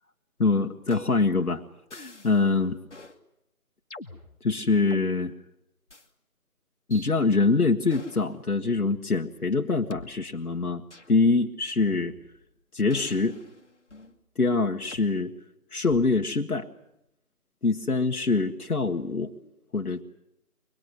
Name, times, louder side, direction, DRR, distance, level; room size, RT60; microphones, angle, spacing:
voice 1, 0.4-1.6 1.9-2.8 4.4-5.3 6.9-10.8 11.1-12.1 12.7-13.4 14.4-15.3 15.7-16.7 17.6-19.3 19.7-20.0, left 3 dB, 80° left, 2 dB, 1.7 m, -24 dB
sound 1, 0.9-1.4 1.9-2.5 2.9-3.2 3.9-5.1 5.9-6.1 6.9-7.1 7.9-8.3 8.9-9.0 9.9-10.0 10.9-11.2 11.9-12.5 12.9-14.2 14.9-15.1 15.9-16.3, left 2 dB, 50° left, 1.8 m, -46 dB
24.0 x 21.0 x 9.6 m, 0.83 s
figure-of-eight pair, 180°, 44 cm